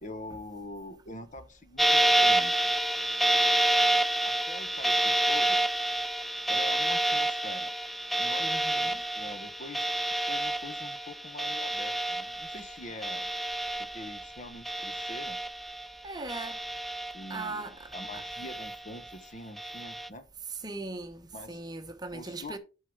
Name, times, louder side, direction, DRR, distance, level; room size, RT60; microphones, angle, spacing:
voice 1, 0.0-2.7 4.2-5.6 6.5-7.7 8.2-9.9 10.3-13.3 13.9-15.4 17.1-20.2 21.3-21.6 22.1-22.6, left 1 dB, 40° left, 1.1 m, -44 dB
sound 1, 1.8-14.4 14.7-15.9 16.3-17.5 17.9-19.0 19.6-20.1, right 1 dB, ahead, 0.3 m, -28 dB
voice 2, 8.4-9.0 16.0-16.6 17.3-18.2 20.5-22.6, right 3 dB, 20° right, 1.0 m, -39 dB
8.3 x 5.6 x 4.8 m
head